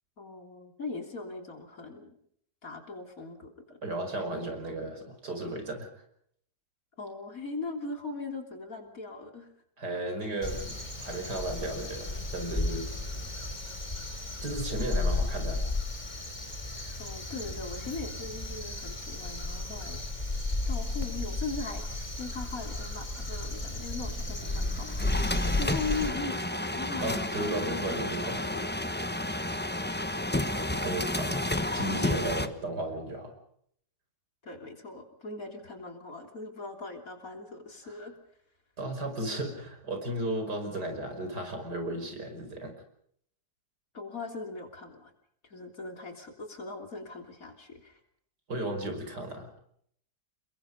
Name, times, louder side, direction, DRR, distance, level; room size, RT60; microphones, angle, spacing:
voice 1, 0.2-2.2 2.6-3.8 7.0-9.5 17.0-20.0 20.7-28.7 29.9-30.1 34.4-38.2 43.9-45.1 45.4-48.0, left 3 dB, 55° left, 5 dB, 3.8 m, -40 dB
voice 2, 3.8-5.9 9.8-12.9 14.4-15.6 27.0-28.6 30.8-33.3 37.8-37.9 38.8-42.7 48.5-49.6, right 1 dB, 75° right, 5 dB, 5.9 m, -35 dB
Crow, 10.4-26.1, left 2 dB, 25° left, 3.7 m, -33 dB
sound 1, 24.3-32.5, left 1 dB, 10° left, 0.9 m, -31 dB
29.5 x 22.0 x 5.3 m, 0.67 s
omnidirectional pair, 1.8 m